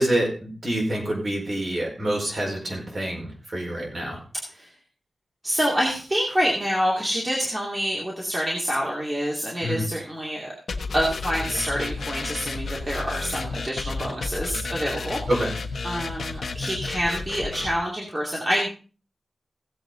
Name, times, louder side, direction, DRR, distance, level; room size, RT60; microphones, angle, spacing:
voice 1, 0.0-4.2 9.6-9.9 15.3-15.5, right 1 dB, 35° right, -1 dB, 4.9 m, -26 dB
voice 2, 5.4-10.5 10.9-15.2 15.8-18.7, equal, 15° right, -3 dB, 2.4 m, -27 dB
sound 1, 10.7-17.7, left 4 dB, 65° left, 1.1 m, -32 dB
16.5 x 7.8 x 3.9 m, 0.38 s
wide cardioid pair, 150°, 0 cm